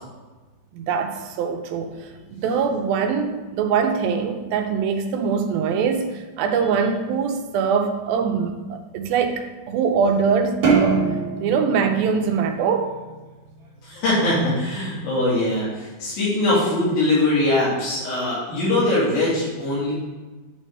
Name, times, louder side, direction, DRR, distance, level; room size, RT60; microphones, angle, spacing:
voice 1, 0.7-11.0 11.4-12.9, right 6 dB, 85° right, 6 dB, 2.4 m, -23 dB
sound 1, 10.6-13.2, right 5 dB, 60° right, 1.3 m, -23 dB
voice 2, 13.8-19.9, left 2 dB, 75° left, -9 dB, 3.8 m, -22 dB
9.8 x 3.4 x 4.3 m, 1.3 s
omnidirectional pair, 4.2 m